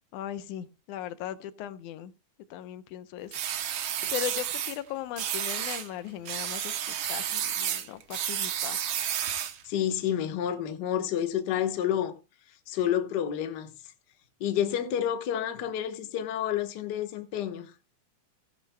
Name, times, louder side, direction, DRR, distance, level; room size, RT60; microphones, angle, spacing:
voice 1, 0.1-2.1 2.5-3.4 4.1-8.9, left 12 dB, 85° left, 2.2 m, -38 dB
sound 1, 3.3-4.8 5.2-5.9 6.3-9.6, right 10 dB, 65° right, 1.3 m, -31 dB
voice 2, 9.6-12.2 12.7-13.7 14.4-17.7, left 10 dB, 55° left, 1.2 m, -29 dB
16.0 x 10.5 x 2.2 m
omnidirectional pair, 3.5 m